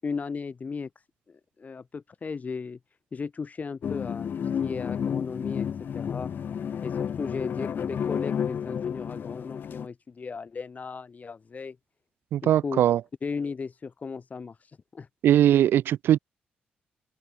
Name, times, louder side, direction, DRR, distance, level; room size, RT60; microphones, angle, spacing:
voice 1, 0.0-2.8 3.1-5.7 5.9-6.3 6.8-11.8 12.4-12.8 13.2-15.1, left 5 dB, 45° left, 8.0 m, -36 dB
sound 1, 3.8-9.9, left 8 dB, 65° left, 7.3 m, -31 dB
voice 2, 12.3-13.0 15.2-16.2, right 11 dB, 80° right, 1.1 m, -20 dB
open air
supercardioid pair, 60°, 4 cm